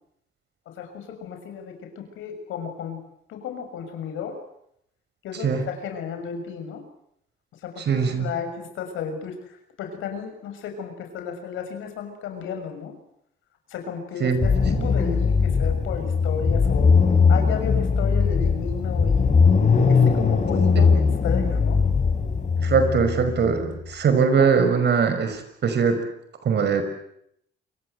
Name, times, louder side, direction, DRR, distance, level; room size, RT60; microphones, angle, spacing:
voice 1, 0.7-3.0 3.3-4.4 5.2-6.8 7.6-7.9 8.2-12.9 13.7-17.0 17.3-19.3 19.9-21.8, left 6 dB, 85° left, 6 dB, 6.4 m, -33 dB
voice 2, 7.9-8.3 14.2-14.5 14.8-14.9 22.6-26.0 26.4-26.8, right 5 dB, 60° right, 9 dB, 5.7 m, -21 dB
sound 1, 14.4-23.8, left 5 dB, 40° left, 6.2 m, -20 dB
28.0 x 23.5 x 8.1 m, 0.73 s
cardioid pair, 90°, 20 cm